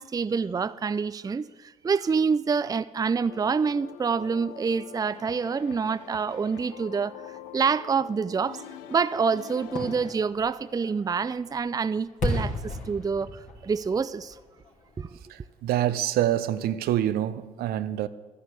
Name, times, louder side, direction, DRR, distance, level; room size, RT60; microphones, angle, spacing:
voice 1, 0.0-7.1 7.5-8.6 8.9-13.3 13.6-14.4 15.0-15.1, right 5 dB, 20° right, 0.5 m, -27 dB
sound 1, 3.3-10.1, left 10 dB, 80° left, 0.8 m, -45 dB
Fireworks, 9.6-15.4 15.8-15.9, left 1 dB, 50° left, 3.3 m, -35 dB
voice 2, 15.3-18.1, right 12 dB, 65° right, 0.7 m, -26 dB
12.5 x 10.0 x 8.3 m
hypercardioid pair, 50°, 17 cm